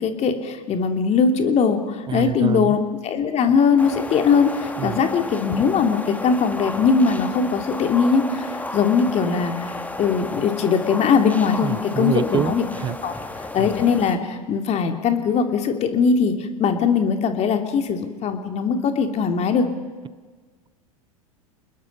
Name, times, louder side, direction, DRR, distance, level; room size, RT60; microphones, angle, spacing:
voice 1, 0.0-9.7 10.0-12.6 13.0-13.1 13.5-16.3 16.6-19.6, left 5 dB, 35° left, 5 dB, 2.9 m, -20 dB
voice 2, 2.1-2.8 4.8-5.0 11.6-13.0 13.2-13.3, right 9 dB, 25° right, 19 dB, 0.7 m, -26 dB
sound 1, 3.8-14.1, left 2 dB, 10° left, 1.9 m, -33 dB
30.0 x 20.5 x 5.5 m, 1.4 s
hypercardioid pair, 90°, 18 cm